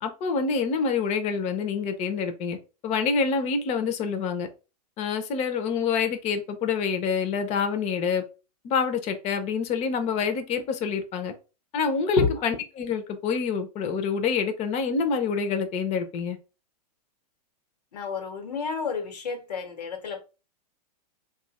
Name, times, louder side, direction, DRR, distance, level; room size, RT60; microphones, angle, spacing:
voice 1, 0.0-2.6 2.8-4.5 5.0-8.2 8.6-11.3 11.7-16.4, left 5 dB, 35° left, 0.7 m, -27 dB
voice 2, 17.9-20.2, left 5 dB, 80° left, 1.2 m, -29 dB
2.7 x 2.5 x 4.1 m
hypercardioid pair, 115°, 20 cm